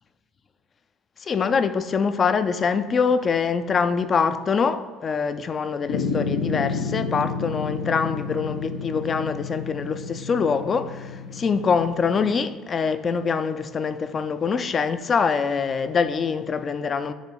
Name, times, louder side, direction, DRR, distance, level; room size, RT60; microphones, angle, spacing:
voice 1, 1.2-17.1, left 5 dB, 35° left, 0.4 m, -24 dB
sound 1, 5.9-12.3, left 4 dB, 85° left, 0.6 m, -31 dB
7.3 x 3.0 x 5.4 m
cardioid pair, 120°, 0 cm